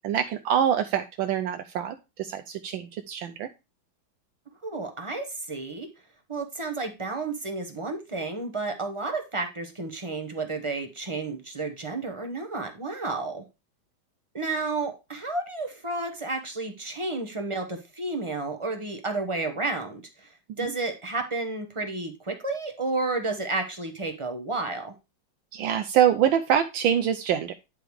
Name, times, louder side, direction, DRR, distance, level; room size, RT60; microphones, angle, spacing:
voice 1, 0.0-3.5 20.6-20.7 25.5-27.5, right 9 dB, 80° right, 7 dB, 1.3 m, -25 dB
voice 2, 4.6-5.9 6.3-13.4 14.3-20.3 20.6-24.9, right 3 dB, 30° right, 4 dB, 0.6 m, -31 dB
9.9 x 3.5 x 4.6 m, 0.26 s
omnidirectional pair, 2.2 m